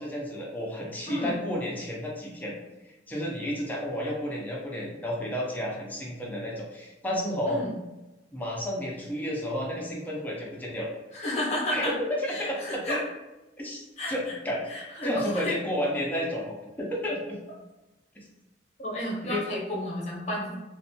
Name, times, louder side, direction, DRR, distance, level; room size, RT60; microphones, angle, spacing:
voice 1, 0.0-2.6 2.8-7.6 8.3-10.9 11.7-13.0 13.6-14.7 15.0-17.4 19.2-19.5, equal, 10° left, -4 dB, 0.5 m, -31 dB
voice 2, 7.5-7.8 11.1-11.9 12.3-13.0 14.0-14.4 14.7-15.6 18.8-20.5, left 1 dB, 40° left, -4 dB, 0.8 m, -32 dB
2.6 x 2.1 x 2.6 m, 1.0 s
head